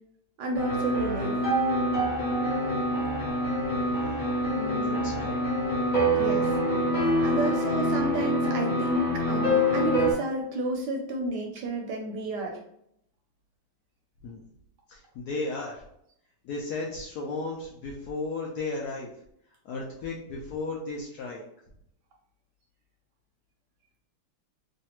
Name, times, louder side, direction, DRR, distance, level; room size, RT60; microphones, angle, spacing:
voice 1, 0.4-1.4 4.5-5.1 6.1-6.6 7.2-12.6, right 1 dB, 75° right, 1 dB, 1.0 m, -31 dB
sound 1, 0.5-10.1, equal, 40° left, 0.6 m, -26 dB
voice 2, 3.7-4.3 4.8-5.4 7.2-7.3 14.2-14.4 14.9-15.8 16.4-19.1 19.6-21.4, left 3 dB, 75° left, -3 dB, 0.9 m, -35 dB
3.2 x 2.3 x 2.9 m, 0.74 s
omnidirectional pair, 2.1 m